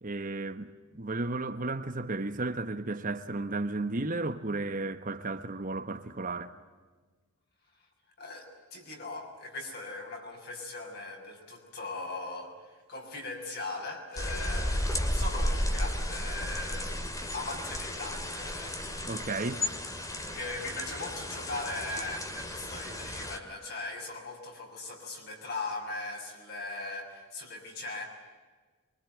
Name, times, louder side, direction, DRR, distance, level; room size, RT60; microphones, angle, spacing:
voice 1, 0.0-6.6 19.1-19.7, right 2 dB, 40° right, 1.1 m, -34 dB
voice 2, 8.2-16.9 17.3-18.8 20.0-28.0, left 2 dB, 45° left, 6.5 m, -39 dB
sound 1, 14.2-23.4, left 1 dB, 15° left, 2.2 m, -33 dB
24.5 x 24.0 x 9.3 m
head